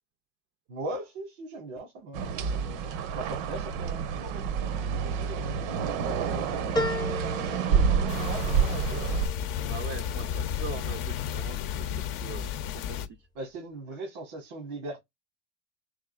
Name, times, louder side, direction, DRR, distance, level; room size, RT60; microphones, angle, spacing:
voice 1, 0.7-5.6 6.0-9.2 13.3-15.0, right 2 dB, 90° right, 1.3 m, -40 dB
sound 1, 2.1-9.3, right 6 dB, 70° right, 0.8 m, -28 dB
sound 2, 6.8-11.5 12.0-12.7 13.1-13.2, left 1 dB, 10° left, 0.6 m, -37 dB
sound 3, 8.1-13.1, left 9 dB, 55° left, 0.6 m, -33 dB
voice 2, 9.6-12.5 12.7-13.2, right 9 dB, 35° right, 0.4 m, -42 dB
3.5 x 3.5 x 2.3 m
supercardioid pair, 115°, 38 cm